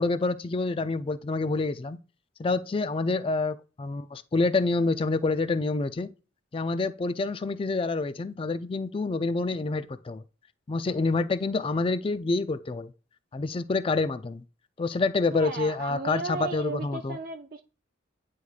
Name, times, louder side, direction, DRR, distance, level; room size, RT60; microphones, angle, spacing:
voice 1, 0.0-2.0 2.4-6.1 6.5-10.2 10.7-12.9 13.3-14.4 14.8-17.2, left 3 dB, 30° left, 0.4 m, -27 dB
voice 2, 15.3-17.6, right 4 dB, 50° right, 0.5 m, -35 dB
9.8 x 4.7 x 2.4 m
head